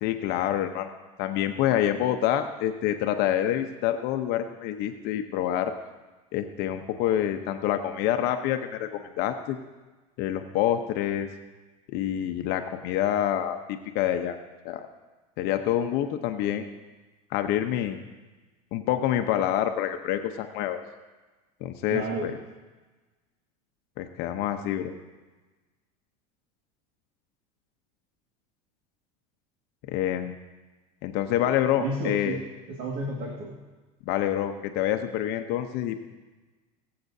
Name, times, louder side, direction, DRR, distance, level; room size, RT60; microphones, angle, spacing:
voice 1, 0.0-0.9 1.2-5.7 6.3-9.6 10.2-11.3 11.9-14.4 14.6-14.9 15.4-16.7 17.3-18.0 18.7-20.8 21.6-22.3 24.0-24.9 29.9-30.4 31.0-32.4 34.1-36.0, left 11 dB, 60° left, 6 dB, 0.8 m, -27 dB
voice 2, 21.9-22.3 31.8-33.6, right 2 dB, 50° right, -1 dB, 1.9 m, -32 dB
20.5 x 7.7 x 2.7 m, 1.2 s
supercardioid pair, 105°, 19 cm